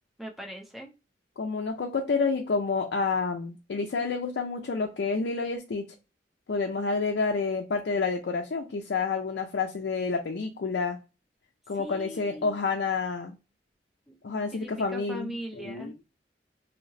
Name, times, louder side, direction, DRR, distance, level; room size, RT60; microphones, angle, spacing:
voice 1, 0.2-0.9 11.7-12.6 14.1-14.2 14.5-16.0, right 1 dB, ahead, 0 dB, 0.6 m, -40 dB
voice 2, 1.4-5.9 6.5-11.0 11.7-13.4 14.2-15.9, left 4 dB, 65° left, 3 dB, 0.4 m, -29 dB
3.2 x 2.8 x 2.6 m, 0.31 s
head